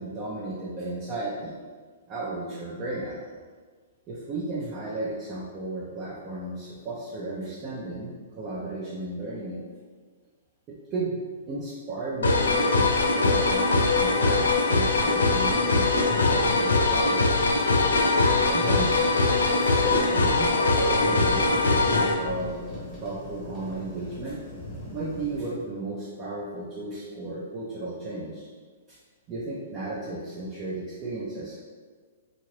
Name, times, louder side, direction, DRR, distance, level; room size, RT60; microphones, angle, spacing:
voice 1, 0.0-1.6 2.1-3.2 4.1-9.6 10.9-11.2 11.5-17.5 18.4-24.4 24.9-28.5 28.9-29.0 29.3-31.6, right 2 dB, 30° right, -7 dB, 0.6 m, -34 dB
sound 1, 12.2-22.1, left 3 dB, 80° left, 0.4 m, -22 dB
sound 2, 14.9-25.5, left 4 dB, 20° left, 0.8 m, -40 dB
2.8 x 2.5 x 3.1 m, 1.5 s
hypercardioid pair, 120°, 0 cm